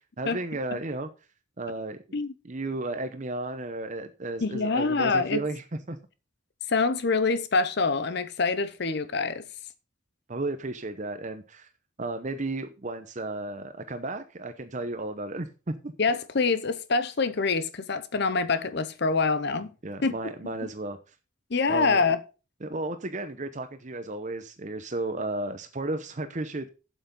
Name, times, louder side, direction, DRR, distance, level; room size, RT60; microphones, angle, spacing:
voice 1, 0.2-1.1 1.6-2.0 2.4-6.0 10.3-11.7 12.0-15.9 19.8-21.1 21.7-22.0 22.6-26.7, right 2 dB, 40° right, 0.8 m, -33 dB
voice 2, 4.4-5.4 6.7-9.4 16.0-19.7 20.0-20.1 21.5-22.2, left 4 dB, 55° left, 0.8 m, -25 dB
8.2 x 7.9 x 5.3 m
head